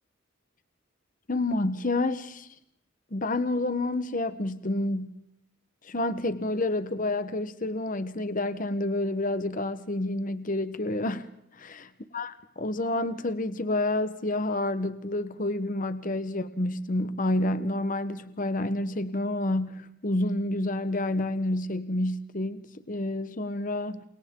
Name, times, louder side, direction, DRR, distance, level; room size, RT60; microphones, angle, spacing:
voice 1, 1.3-2.5 3.1-5.1 5.8-11.3 11.6-11.9 12.1-24.0, left 2 dB, 40° left, 12 dB, 1.1 m, -29 dB
29.0 x 28.5 x 3.8 m, 0.79 s
head